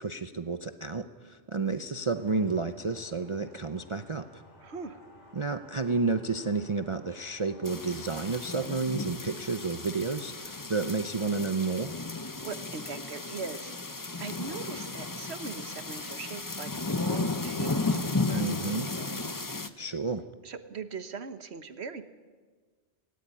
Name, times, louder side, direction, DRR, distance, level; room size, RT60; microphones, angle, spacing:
voice 1, 0.0-4.4 5.4-11.9 18.3-18.9 19.8-20.2, right 4 dB, 35° right, 9 dB, 0.6 m, -31 dB
sound 1, 2.1-8.4, left 1 dB, 80° left, 4.8 m, -56 dB
voice 2, 4.6-5.0 12.4-19.5 20.4-22.0, right 5 dB, 65° right, 11 dB, 1.4 m, -41 dB
sound 2, 7.6-19.7, left 3 dB, 20° left, 0.8 m, -34 dB
18.5 x 18.0 x 9.8 m, 1.4 s
omnidirectional pair, 1.2 m